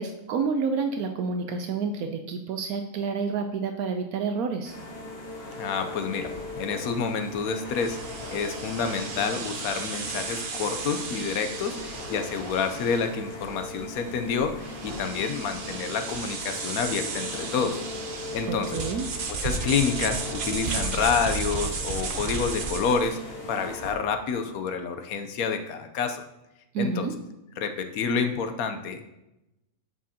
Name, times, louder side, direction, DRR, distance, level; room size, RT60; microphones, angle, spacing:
voice 1, 0.0-4.7 18.5-19.1 26.7-27.1, right 5 dB, 80° right, 6 dB, 1.1 m, -29 dB
sound 1, 4.6-23.9, left 2 dB, 45° left, 1.4 m, -39 dB
voice 2, 5.6-8.0 8.3-17.8 18.3-18.8 19.4-23.2 23.5-26.2 26.8-27.1 27.6-29.0, left 5 dB, 75° left, 7 dB, 1.2 m, -28 dB
sound 2, 7.7-23.1, right 4 dB, 45° right, 0.7 m, -34 dB
8.3 x 7.3 x 2.9 m, 0.91 s
omnidirectional pair, 1.5 m